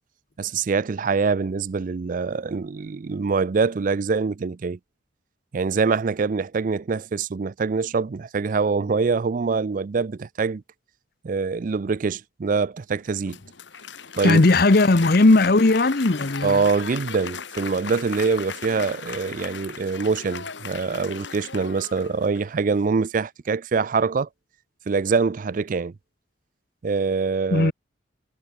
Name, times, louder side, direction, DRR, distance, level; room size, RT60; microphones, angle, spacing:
voice 1, 0.4-4.8 5.5-10.6 11.2-13.4 14.2-14.4 16.4-24.3 24.9-25.9 26.8-27.7, right 4 dB, 45° right, 0.4 m, -24 dB
Applause, 13.0-22.6, left 6 dB, 70° left, 1.9 m, -37 dB
voice 2, 14.2-16.6 27.5-27.7, left 2 dB, 55° left, 0.9 m, -17 dB
head